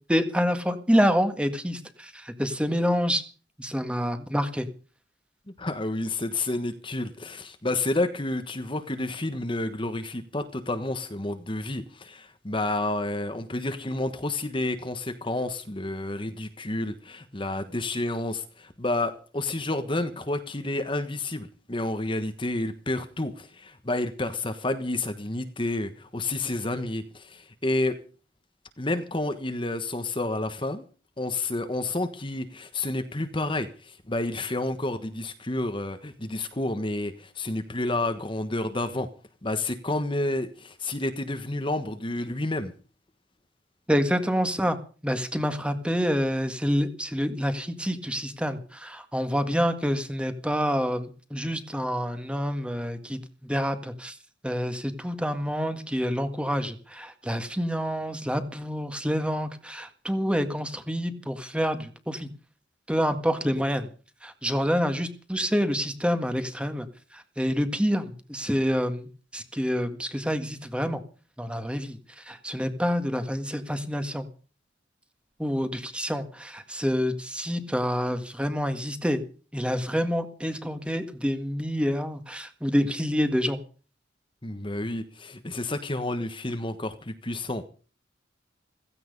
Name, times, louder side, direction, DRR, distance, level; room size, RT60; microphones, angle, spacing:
voice 1, 0.1-3.2 3.6-4.7 43.9-44.8 45.0-54.2 54.4-62.3 62.9-63.9 64.2-66.9 67.1-71.0 71.4-74.3 75.4-79.2 79.5-83.6, equal, 5° right, 8 dB, 1.8 m, -27 dB
voice 2, 5.6-27.9 28.8-30.8 31.2-39.1 39.4-42.7 84.4-87.6, left 2 dB, 25° left, 8 dB, 1.3 m, -30 dB
16.0 x 16.0 x 5.4 m, 0.39 s
head